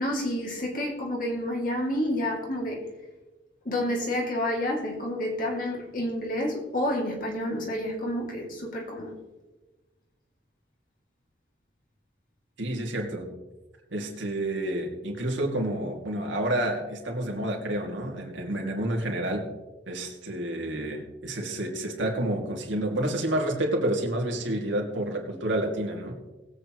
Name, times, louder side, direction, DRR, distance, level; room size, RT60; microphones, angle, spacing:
voice 1, 0.0-2.8 3.6-9.1, left 1 dB, 45° left, -1 dB, 2.5 m, -29 dB
voice 2, 12.6-13.3 13.9-19.5 19.9-26.2, right 1 dB, 75° right, 0 dB, 2.4 m, -29 dB
20.5 x 8.2 x 3.1 m, 1.2 s
head